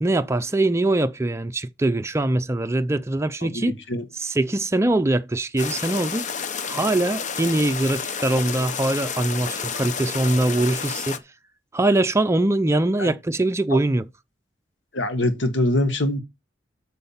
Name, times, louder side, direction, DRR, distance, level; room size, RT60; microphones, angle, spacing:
voice 1, 0.0-3.8 4.1-6.3 6.6-11.2 11.7-14.1, right 2 dB, 15° right, 0.5 m, -22 dB
voice 2, 3.4-4.0 13.0-13.1 13.7-13.8 14.9-16.2, left 1 dB, 70° left, 1.6 m, -24 dB
sound 1, 5.6-11.2, left 6 dB, 40° left, 0.9 m, -30 dB
8.5 x 6.5 x 5.5 m
head